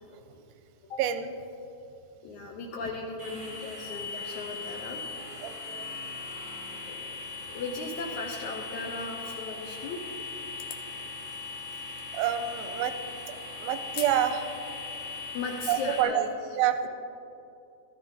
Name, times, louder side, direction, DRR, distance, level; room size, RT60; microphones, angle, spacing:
voice 1, 1.0-1.3 5.4-5.9 12.1-13.0 13.6-14.4 15.7-16.3 16.6-16.9, right 10 dB, 90° right, 9 dB, 2.5 m, -27 dB
voice 2, 2.2-5.0 6.7-7.1 7.5-10.0 15.3-16.3, left 3 dB, 75° left, 1 dB, 1.8 m, -37 dB
sound 1, 3.2-16.0, left 4 dB, 10° right, 1.1 m, -39 dB
sound 2, 10.5-10.9 12.0-12.1 13.9-14.2 14.6-14.7 15.4-15.8, left 9 dB, 90° left, 1.5 m, -41 dB
14.5 x 13.5 x 3.9 m, 2.7 s
omnidirectional pair, 4.3 m